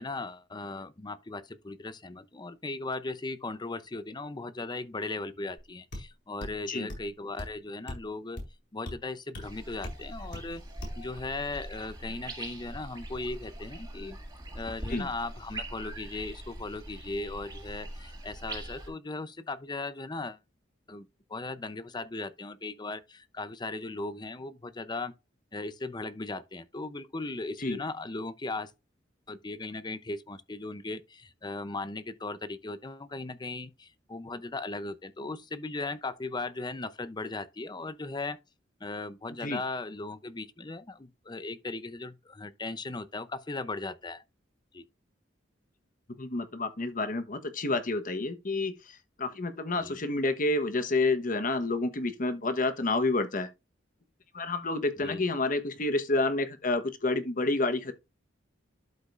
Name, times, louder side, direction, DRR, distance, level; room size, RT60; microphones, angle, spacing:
voice 1, 0.0-8.4 8.7-10.6 11.0-14.2 14.5-20.4 20.9-25.1 25.5-28.7 29.3-38.4 38.8-44.2 44.7-44.8 49.8-50.0 55.0-55.2, left 3 dB, 25° left, 0.6 m, -37 dB
sound 1, 5.6-5.7 5.9-6.1 6.4-6.6 6.9-7.1 7.4-7.5 7.9-8.0 8.4-8.5 8.9-9.0 9.3-9.5 9.8-10.0 10.3-10.5 10.8-11.0, left 1 dB, 70° left, 4.1 m, -39 dB
sound 2, 9.4-18.9, right 1 dB, 20° right, 1.9 m, -42 dB
voice 2, 46.2-53.5 54.3-57.9, left 2 dB, 45° left, 1.2 m, -29 dB
12.0 x 5.1 x 2.5 m
head